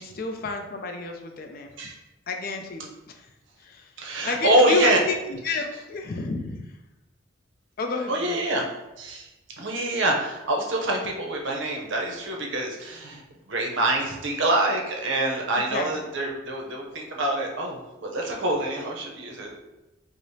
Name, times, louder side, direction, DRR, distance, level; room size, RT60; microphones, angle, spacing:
voice 1, 0.0-1.7 2.3-3.3 3.6-3.9 4.2-5.1 5.4-6.6 7.8-8.3 15.7-15.9, left 3 dB, 45° left, 4 dB, 0.4 m, -30 dB
voice 2, 4.0-5.0 5.5-5.6 8.1-8.7 9.0-9.3 9.6-19.5, right 1 dB, 70° right, 0 dB, 0.6 m, -25 dB
4.7 x 2.0 x 2.7 m, 1.0 s
head